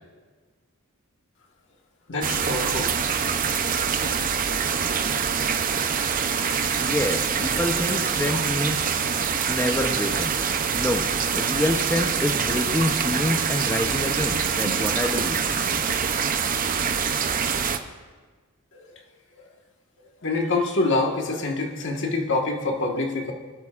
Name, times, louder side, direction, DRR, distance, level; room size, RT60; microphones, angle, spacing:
voice 1, 2.1-2.9 18.8-18.9 20.2-23.3, left 3 dB, 55° left, 1 dB, 1.6 m, -25 dB
sound 1, 2.2-17.8, right 6 dB, 40° right, 0.6 m, -25 dB
voice 2, 6.8-9.1 9.5-11.1 11.3-15.4, left 1 dB, 10° left, 2 dB, 0.7 m, -27 dB
23.0 x 13.0 x 2.5 m, 1.4 s
head